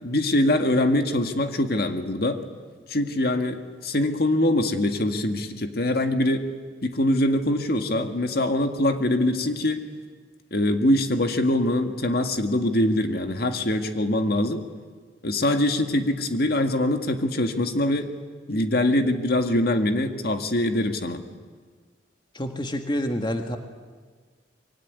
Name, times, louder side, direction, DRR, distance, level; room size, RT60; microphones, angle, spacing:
voice 1, 0.0-2.4 2.9-6.4 6.8-9.8 10.5-14.6 15.2-18.1 18.5-21.2, left 1 dB, 60° left, 6 dB, 1.9 m, -23 dB
voice 2, 22.3-23.6, equal, 25° left, 5 dB, 1.7 m, -27 dB
25.0 x 23.5 x 9.8 m, 1.5 s
head